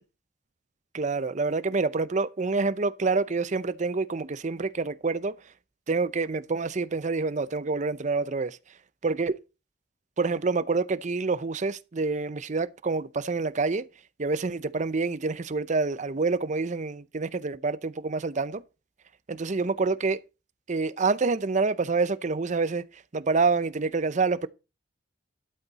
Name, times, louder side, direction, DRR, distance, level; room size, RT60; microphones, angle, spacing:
voice 1, 0.9-5.3 5.9-8.6 9.0-9.4 10.2-13.9 14.2-18.6 19.3-20.2 20.7-22.8 23.1-24.5, right 4 dB, 40° right, 0.6 m, -27 dB
12.5 x 8.1 x 4.1 m
head